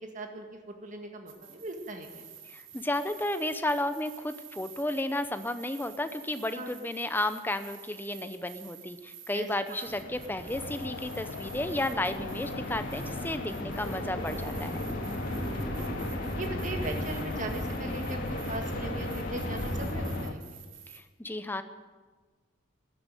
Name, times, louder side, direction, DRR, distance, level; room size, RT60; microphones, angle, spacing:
voice 1, 0.0-2.3 6.6-6.7 9.3-9.5 15.3-16.0 16.3-20.6, right 2 dB, 40° right, 4 dB, 1.9 m, -39 dB
sound 1, 1.3-21.0, right 9 dB, 75° right, 1.9 m, -50 dB
voice 2, 2.4-14.8 20.9-21.6, left 1 dB, 10° left, 10 dB, 0.7 m, -33 dB
sound 2, 9.8-20.3, equal, 45° left, 2.5 m, -35 dB
sound 3, 10.5-20.3, left 5 dB, 85° left, 0.5 m, -42 dB
13.5 x 11.0 x 9.2 m, 1.4 s
head